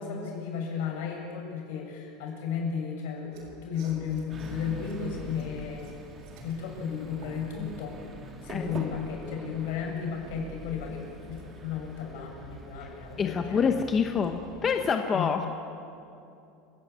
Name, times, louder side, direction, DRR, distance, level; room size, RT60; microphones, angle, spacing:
voice 1, 0.0-5.9 6.4-8.0 8.4-13.7 15.1-15.3, left 7 dB, 70° left, 1 dB, 7.6 m, -34 dB
Mechanisms / Sawing, 3.3-8.0, right 3 dB, 55° right, 6.4 m, -53 dB
sound 1, 4.3-14.9, right 2 dB, 20° right, 2.5 m, -44 dB
voice 2, 13.2-15.5, left 6 dB, 20° left, 5 dB, 1.1 m, -26 dB
28.5 x 17.0 x 9.6 m, 2.6 s
supercardioid pair, 165°, 0 cm